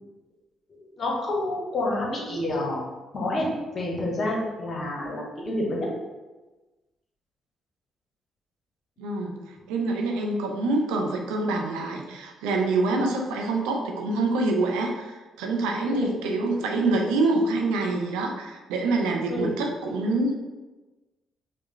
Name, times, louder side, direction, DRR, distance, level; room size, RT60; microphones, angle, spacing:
voice 1, 0.7-2.8 3.1-3.5 3.7-5.9 15.9-16.1 19.3-19.5, left 1 dB, 45° left, -1 dB, 1.0 m, -28 dB
voice 2, 9.0-20.3, right 2 dB, 75° right, 1 dB, 0.5 m, -26 dB
4.9 x 2.2 x 3.1 m, 1.2 s
hypercardioid pair, 45°, 0 cm